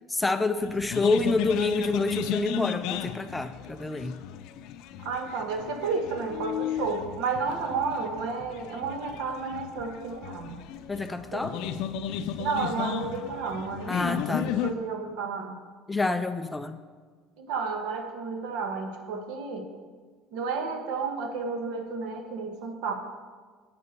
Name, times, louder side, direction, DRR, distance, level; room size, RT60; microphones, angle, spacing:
voice 1, 0.1-4.1 10.9-11.5 13.9-14.6 15.9-16.8, left 3 dB, 10° left, 9 dB, 0.4 m, -27 dB
sound 1, 0.6-14.7, left 9 dB, 65° left, 0.6 m, -35 dB
voice 2, 5.0-10.6 11.3-11.6 12.4-15.6 17.4-19.7 20.3-22.9, right 4 dB, 75° right, 5 dB, 1.5 m, -32 dB
8.9 x 6.9 x 6.7 m, 1.5 s
cardioid pair, 160°, 0 cm